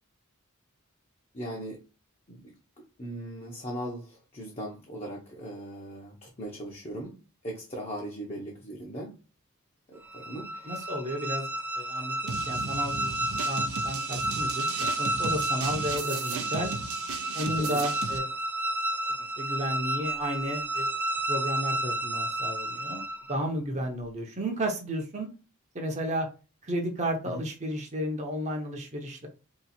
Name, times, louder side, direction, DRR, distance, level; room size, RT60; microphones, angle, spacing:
voice 1, 1.3-1.8 2.3-9.2 9.9-10.7 16.3-16.5 17.6-17.8 23.7-23.8 27.3-27.4, right 1 dB, 30° left, -2 dB, 0.8 m, -39 dB
sound 1, 10.0-23.4, right 1 dB, 10° right, 0.4 m, -31 dB
voice 2, 10.6-11.5 11.7-13.2 13.4-16.7 17.3-18.3 19.4-20.9 21.3-25.3 25.7-26.3 26.6-29.3, equal, 35° right, 3 dB, 0.8 m, -33 dB
sound 2, 12.3-18.2, right 5 dB, 85° right, 0.6 m, -36 dB
3.1 x 3.0 x 4.2 m, 0.33 s
head